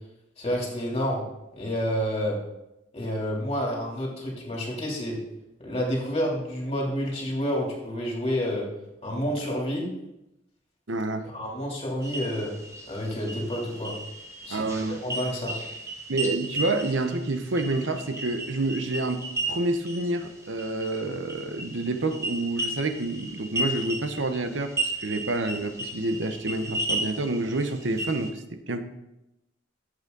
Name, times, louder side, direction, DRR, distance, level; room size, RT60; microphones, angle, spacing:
voice 1, 0.4-1.2 1.5-2.4 2.9-5.2 5.6-8.7 9.0-9.9 11.3-12.5 12.9-13.9 14.4-14.7 15.0-15.5, equal, 35° left, -3 dB, 3.2 m, -29 dB
voice 2, 10.9-11.3 14.5-15.0 16.1-28.9, right 2 dB, 70° right, 8 dB, 1.0 m, -28 dB
sound 1, 12.0-28.3, right 1 dB, 15° right, 1.3 m, -35 dB
12.0 x 8.0 x 4.0 m, 0.90 s
head